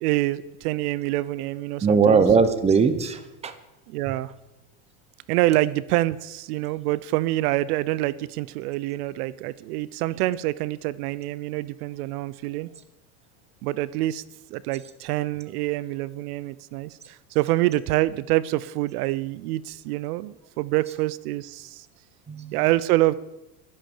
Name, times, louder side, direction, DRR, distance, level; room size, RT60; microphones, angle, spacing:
voice 1, 0.0-2.2 3.9-4.3 5.3-12.7 13.6-14.2 14.5-21.8 22.5-23.2, right 17 dB, 70° right, 19 dB, 0.7 m, -26 dB
voice 2, 1.8-3.5 22.3-22.6, right 5 dB, 15° right, 11 dB, 0.9 m, -20 dB
12.0 x 11.0 x 7.1 m, 0.95 s
supercardioid pair, 155°, 47 cm